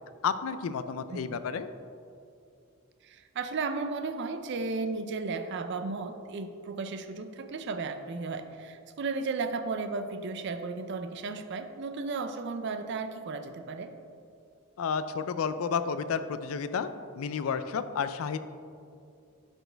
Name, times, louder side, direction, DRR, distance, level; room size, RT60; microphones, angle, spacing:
voice 1, 0.2-1.7 14.8-16.9 17.2-18.4, left 6 dB, 85° left, 12 dB, 0.4 m, -31 dB
voice 2, 3.0-13.9, right 4 dB, 55° right, 8 dB, 0.4 m, -34 dB
11.0 x 4.4 x 3.3 m, 2.4 s
head